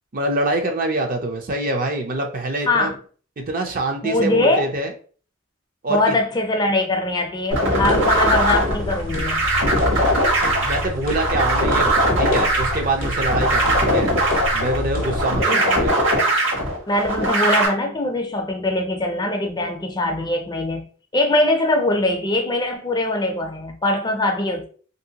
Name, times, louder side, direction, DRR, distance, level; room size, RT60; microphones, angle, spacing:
voice 1, 0.1-2.9 3.4-4.9 5.8-6.1 10.6-14.1 14.5-15.9, right 1 dB, 45° right, 0.5 m, -25 dB
voice 2, 2.7-3.0 4.0-4.7 5.9-9.4 15.4-15.7 16.9-20.9 21.1-24.7, left 1 dB, 20° left, 0.4 m, -22 dB
sound 1, 7.5-17.7, right 1 dB, 65° right, 1.2 m, -20 dB
sound 2, 7.7-15.3, left 1 dB, 60° left, 0.6 m, -29 dB
2.9 x 2.7 x 2.8 m
head